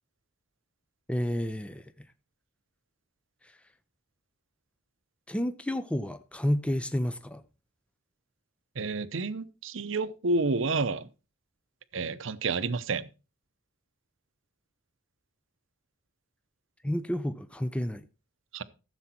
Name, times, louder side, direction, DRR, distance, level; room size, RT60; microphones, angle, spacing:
voice 1, 1.1-1.8 5.3-7.4 16.8-18.0, equal, 5° left, 0.5 m, -30 dB
voice 2, 8.8-11.1 11.9-13.1 18.5-18.6, right 3 dB, 70° right, 0.8 m, -29 dB
14.0 x 7.2 x 4.3 m
head